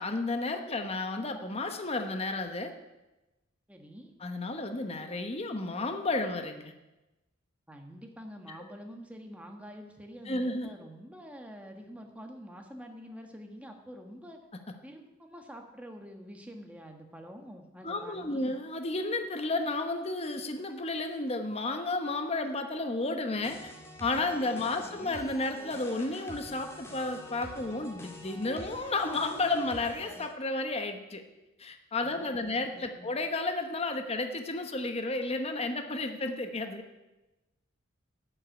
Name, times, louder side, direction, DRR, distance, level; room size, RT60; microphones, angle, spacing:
voice 1, 0.0-2.7 4.2-6.7 10.3-10.7 17.8-23.7 24.0-31.2 31.6-36.8, left 2 dB, 30° left, 6 dB, 1.0 m, -32 dB
voice 2, 3.7-4.1 7.7-14.4 14.8-18.5 24.8-25.2 32.1-33.1, equal, 5° right, 3 dB, 1.5 m, -47 dB
sound 1, 23.4-30.3, equal, 15° left, 2.0 m, -46 dB
12.0 x 7.7 x 9.1 m, 1.0 s
head